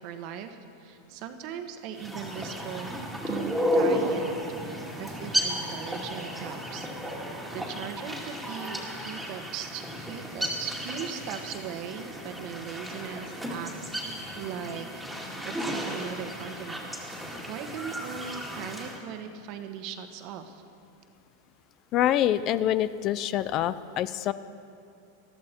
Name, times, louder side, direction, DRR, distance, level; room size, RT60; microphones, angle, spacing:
voice 1, 0.0-4.3 4.6-20.6, right 8 dB, 50° right, 7 dB, 1.3 m, -39 dB
sound 1, 1.9-19.0, equal, ahead, 2.3 m, -33 dB
voice 2, 21.9-24.3, left 12 dB, 40° left, 15 dB, 0.4 m, -25 dB
19.5 x 13.5 x 4.5 m, 2.6 s
supercardioid pair, 130°, 0 cm